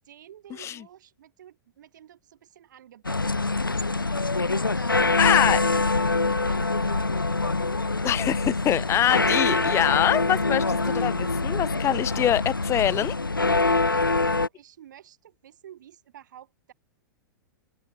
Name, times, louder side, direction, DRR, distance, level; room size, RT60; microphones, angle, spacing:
voice 1, 0.0-3.9 4.1-5.8 6.2-7.8 13.9-16.7, right 11 dB, 60° right, 4.8 m, -50 dB
sound 1, 3.0-14.5, left 3 dB, 90° left, 0.8 m, -24 dB
voice 2, 5.2-5.6 8.0-13.1, left 11 dB, 25° left, 0.9 m, -24 dB
figure-of-eight pair, 100°, 11 cm